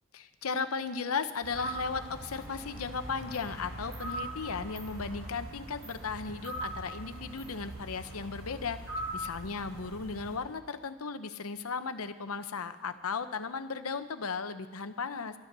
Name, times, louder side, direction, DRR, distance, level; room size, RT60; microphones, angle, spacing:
voice 1, 0.1-8.8 9.1-15.3, left 5 dB, 90° left, 10 dB, 0.8 m, -36 dB
sound 1, 1.4-10.4, right 1 dB, 65° right, 5.0 m, -41 dB
12.5 x 11.5 x 6.7 m, 1.3 s
head